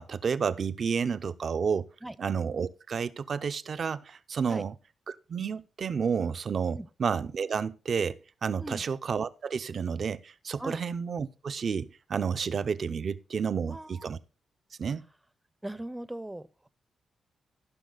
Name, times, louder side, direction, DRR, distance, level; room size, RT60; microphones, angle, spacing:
voice 1, 0.0-1.9 2.2-4.7 5.1-14.2 14.8-15.0, right 6 dB, 55° right, 0.6 m, -31 dB
voice 2, 13.7-14.1 15.6-16.7, right 1 dB, 10° right, 0.6 m, -39 dB
14.5 x 5.9 x 3.9 m
cardioid pair, 80°, 0 cm